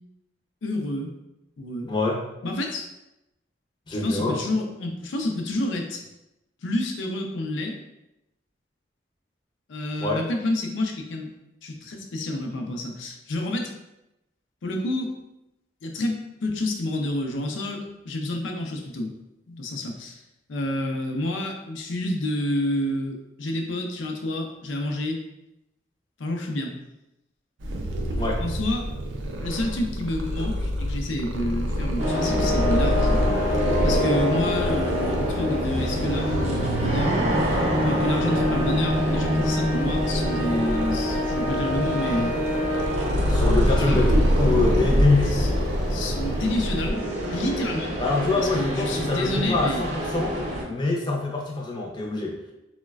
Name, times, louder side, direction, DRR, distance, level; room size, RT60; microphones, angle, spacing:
voice 1, 0.6-1.1 1.6-1.9 2.4-2.9 3.9-6.0 6.6-7.8 9.7-11.3 11.6-13.7 14.6-15.1 15.8-19.1 19.5-20.2 20.5-25.2 26.2-26.7 28.4-28.9 29.4-33.2 33.8-37.4 37.8-42.4 43.8-44.0 45.3-45.5 45.9-47.9 48.4-49.8, left 1 dB, 90° left, 2 dB, 0.5 m, -29 dB
voice 2, 1.9-2.2 3.9-4.4 10.0-10.2 28.2-28.4 43.3-45.4 48.0-50.4 50.7-52.4, left 3 dB, 25° left, -1 dB, 0.4 m, -25 dB
Purr, 27.6-46.9, equal, 85° right, 0.4 m, -27 dB
sound 1, 32.0-50.6, equal, 35° right, 0.5 m, -26 dB
3.9 x 2.1 x 2.3 m, 0.91 s
head